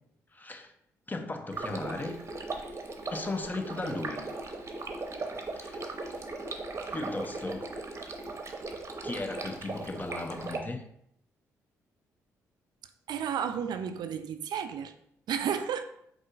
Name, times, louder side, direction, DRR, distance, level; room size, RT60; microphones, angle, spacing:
voice 1, 0.3-0.7 1.1-2.1 3.1-4.2 5.6-6.0 6.9-7.7 9.0-10.8, left 2 dB, 20° left, 0.6 m, -36 dB
Stream, 1.5-10.6, right 3 dB, 35° right, 0.8 m, -38 dB
voice 2, 13.1-14.9 15.3-15.8, right 8 dB, 60° right, 0.4 m, -32 dB
5.0 x 3.7 x 2.4 m
hypercardioid pair, 45°, 8 cm